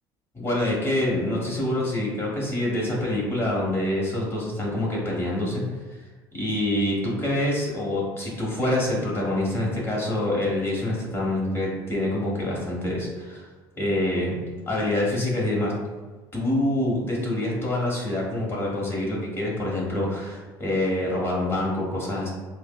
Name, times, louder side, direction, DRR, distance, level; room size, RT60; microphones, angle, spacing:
voice 1, 0.3-5.6 6.3-13.5 13.7-14.3 14.7-15.7 16.3-22.3, left 1 dB, 20° left, -4 dB, 1.3 m, -26 dB
4.5 x 2.1 x 2.3 m, 1.3 s
supercardioid pair, 90°, 11 cm